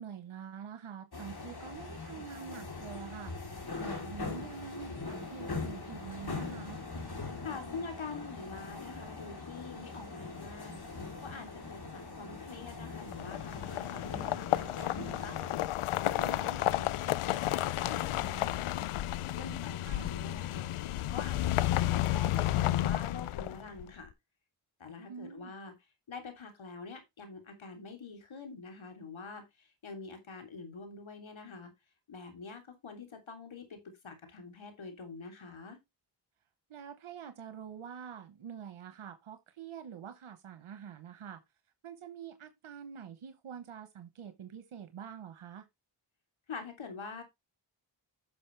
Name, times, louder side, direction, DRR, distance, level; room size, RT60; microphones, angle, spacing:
voice 1, 0.0-6.8 16.2-16.6 19.9-20.1 25.1-25.5 36.7-41.4 41.8-45.7, right 7 dB, 80° right, 1.1 m, -46 dB
sound 1, 1.1-15.6, left 3 dB, 50° left, 3.3 m, -42 dB
voice 2, 7.4-10.8 11.2-15.4 15.9-18.9 19.4-20.7 21.1-24.1 24.8-25.7 26.1-31.7 32.1-33.8 34.0-35.8 46.5-47.2, left 4 dB, 70° left, 3.2 m, -46 dB
sound 2, 13.0-23.8, left 14 dB, 90° left, 0.6 m, -32 dB
10.5 x 6.4 x 3.3 m
cardioid pair, 45°, 49 cm